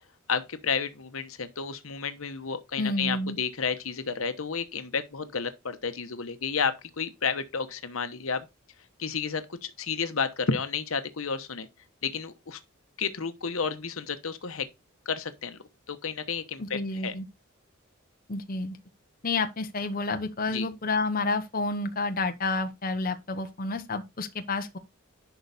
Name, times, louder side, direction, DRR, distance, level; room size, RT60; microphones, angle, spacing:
voice 1, 0.3-8.5 9.0-11.7 12.0-12.6 13.0-14.7 15.1-15.6 15.9-17.1 20.5-20.7, left 5 dB, 80° left, 1.1 m, -31 dB
voice 2, 2.8-3.4 16.6-17.2 18.3-18.8 19.2-24.8, left 3 dB, 45° left, 1.0 m, -30 dB
11.0 x 4.7 x 4.1 m
head